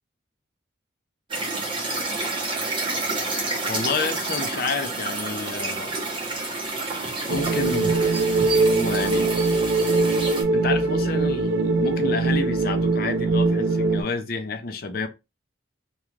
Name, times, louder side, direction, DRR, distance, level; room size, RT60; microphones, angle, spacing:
sound 1, 1.3-10.4, right 2 dB, 25° right, 0.8 m, -29 dB
voice 1, 3.7-6.0 7.2-9.3 10.5-15.1, left 4 dB, 50° left, 0.5 m, -30 dB
sound 2, 7.3-14.0, right 3 dB, 70° right, 0.4 m, -22 dB
2.4 x 2.3 x 3.1 m
head